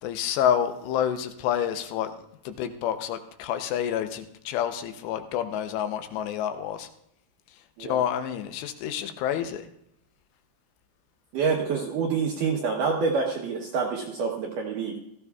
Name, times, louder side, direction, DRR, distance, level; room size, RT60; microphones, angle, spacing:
voice 1, 0.0-2.1 2.5-6.9 7.8-9.7, left 9 dB, 85° left, 8 dB, 3.0 m, -28 dB
voice 2, 11.3-14.9, right 5 dB, 70° right, 0 dB, 2.0 m, -27 dB
17.0 x 13.5 x 2.3 m, 0.77 s
omnidirectional pair, 4.9 m